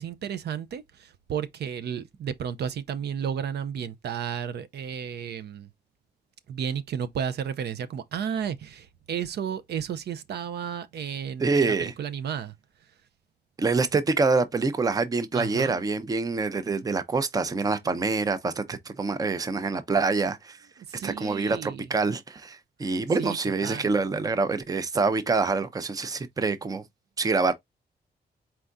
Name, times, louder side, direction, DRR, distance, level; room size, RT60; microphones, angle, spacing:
voice 1, 0.0-5.7 6.5-12.5 15.3-15.8 20.9-21.9 23.2-23.4 23.6-24.0, right 8 dB, 75° right, 0.5 m, -33 dB
voice 2, 11.4-11.9 13.6-20.6 21.0-26.8 27.2-27.5, right 4 dB, 20° right, 0.5 m, -26 dB
4.4 x 3.5 x 2.5 m
wide cardioid pair, 155°, 17 cm